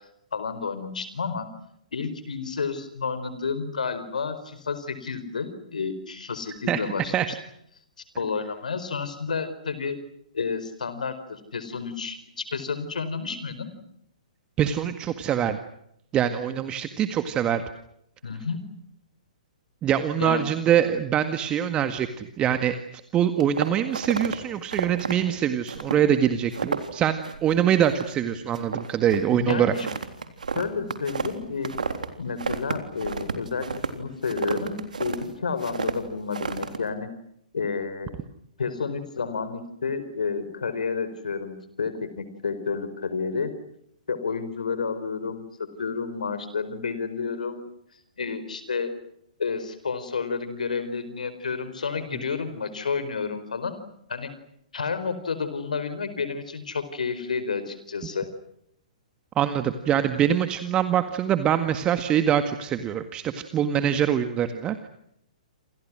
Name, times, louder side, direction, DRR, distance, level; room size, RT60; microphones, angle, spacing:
voice 1, 0.3-1.5 1.9-7.4 8.2-10.0 10.3-13.7 18.2-18.6 20.2-20.4 29.3-29.9 30.5-31.7 32.2-37.1 37.5-38.1 38.6-43.5 44.1-45.4 45.8-47.6 48.2-48.9 49.4-53.7 54.1-54.3 54.7-58.3, left 5 dB, 70° left, 12 dB, 4.7 m, -30 dB
voice 2, 14.6-15.6 16.1-17.6 19.8-22.8 23.1-29.7 59.4-64.9, right 9 dB, 20° right, 9 dB, 1.8 m, -24 dB
sound 1, 23.4-24.3 24.7-25.1 25.7-26.1 26.3-26.9 27.2-27.5 27.8-28.2 28.5-32.1 32.4-35.2 35.6-35.9 36.3-36.8, right 5 dB, 70° right, 3.6 m, -30 dB
28.5 x 28.5 x 6.3 m, 0.75 s
figure-of-eight pair, 120°, 4 cm